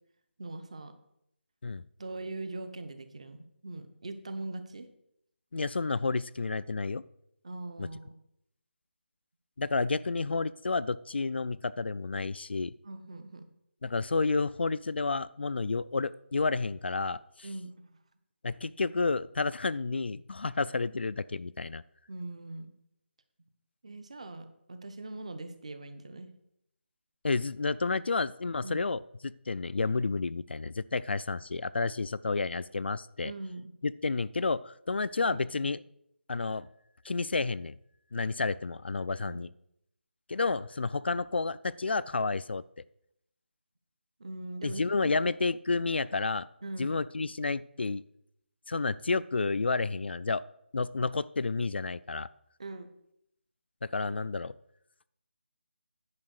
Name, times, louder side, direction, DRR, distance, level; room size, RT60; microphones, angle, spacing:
voice 1, 0.4-0.9 2.0-3.4 3.6-4.9 7.4-8.1 12.8-13.4 17.4-17.9 22.1-22.7 23.8-26.4 28.6-28.9 33.2-33.7 35.2-35.7 39.1-39.5 44.2-45.1 46.6-47.0 52.6-52.9, right 2 dB, 30° right, 10 dB, 0.8 m, -41 dB
voice 2, 5.5-7.0 7.8-7.9 9.6-12.7 13.8-17.5 18.4-21.8 27.2-33.3 33.8-35.8 36.3-36.7 37.0-37.8 38.1-39.5 40.3-42.6 44.6-46.5 46.8-48.0 48.7-50.4 50.7-52.3 53.9-54.5, left 3 dB, 60° left, 16 dB, 0.3 m, -30 dB
9.7 x 5.2 x 6.4 m, 0.76 s
figure-of-eight pair, 175°, 6 cm